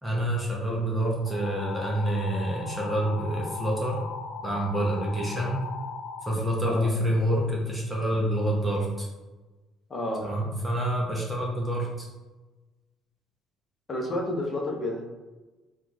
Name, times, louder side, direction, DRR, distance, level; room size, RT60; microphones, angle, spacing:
voice 1, 0.0-4.0 4.4-5.6 6.2-9.1 10.2-12.1, right 1 dB, 5° right, -3 dB, 0.6 m, -27 dB
sound 1, 1.3-6.3, left 5 dB, 65° left, 0.4 m, -38 dB
voice 2, 9.9-10.2 13.9-15.1, left 1 dB, 25° left, -1 dB, 0.8 m, -30 dB
4.4 x 2.3 x 3.9 m, 1.2 s
cardioid pair, 165°, 0 cm